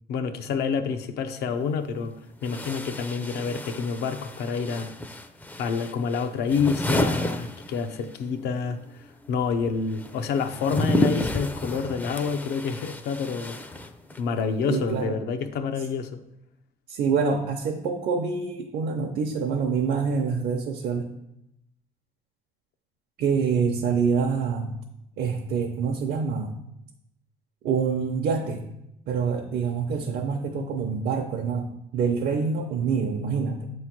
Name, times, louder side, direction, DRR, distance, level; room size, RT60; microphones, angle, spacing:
voice 1, 0.1-2.2 2.4-4.9 5.6-8.8 9.3-13.8 14.2-16.2, left 5 dB, 75° left, 0.7 m, -28 dB
sound 1, 1.5-1.6 2.4-8.2 8.5-14.3, left 1 dB, 10° left, 0.4 m, -31 dB
voice 2, 14.7-15.1 16.9-21.1 23.2-24.7 25.2-26.5 27.6-28.6 29.1-33.7, right 5 dB, 70° right, 0.7 m, -26 dB
7.6 x 3.1 x 5.9 m
cardioid pair, 110°, 17 cm